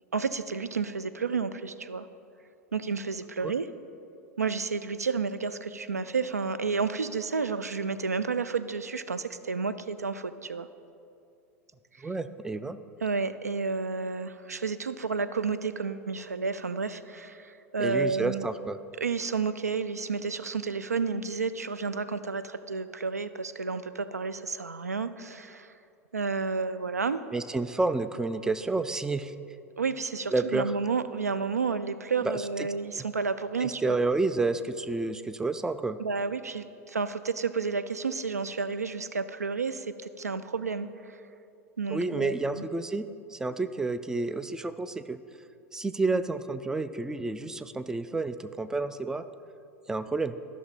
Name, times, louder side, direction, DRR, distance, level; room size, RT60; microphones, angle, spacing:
voice 1, 0.1-2.1 2.7-3.7 4.4-10.7 13.0-18.5 19.0-25.7 26.1-27.2 29.8-34.0 36.0-41.2 41.8-42.7, right 4 dB, 90° right, 12 dB, 0.4 m, -31 dB
voice 2, 12.0-12.8 17.8-18.8 27.3-29.3 30.3-30.8 32.2-32.7 33.0-33.1 33.6-36.0 41.9-45.2 45.7-49.2 49.9-50.3, right 3 dB, 5° right, 12 dB, 0.4 m, -30 dB
14.0 x 6.0 x 4.1 m, 2.6 s
figure-of-eight pair, 85°, 8 cm